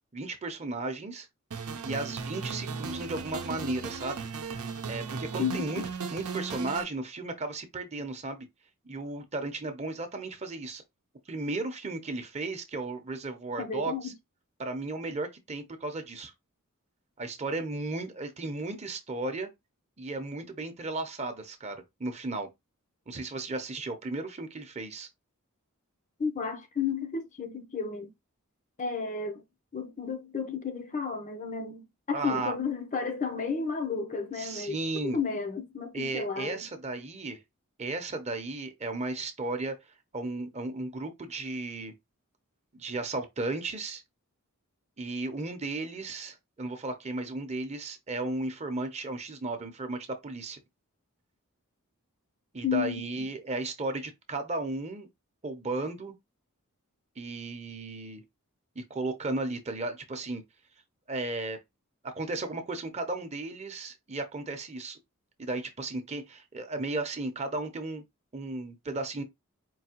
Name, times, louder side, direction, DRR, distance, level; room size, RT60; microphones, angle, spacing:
voice 1, 0.1-1.3 1.8-4.3 4.9-5.8 6.1-8.5 8.8-10.8 11.3-14.1 14.6-16.3 17.2-19.5 20.0-22.5 23.1-25.1 32.1-32.6 34.4-35.2 35.9-37.4 37.8-39.8 40.1-41.9 42.7-44.0 45.0-50.6 52.5-55.1 55.4-56.1 57.2-58.2 58.8-60.4 61.1-61.6 62.0-65.0 65.4-68.0 68.3-69.2, right 2 dB, 30° right, 0.7 m, -35 dB
sound 1, 1.5-6.8, right 5 dB, 90° right, 0.7 m, -36 dB
voice 2, 13.6-14.1 26.2-28.1 28.8-29.4 29.7-36.6 52.6-53.1, left 5 dB, 35° left, 0.6 m, -32 dB
4.7 x 2.7 x 2.9 m
head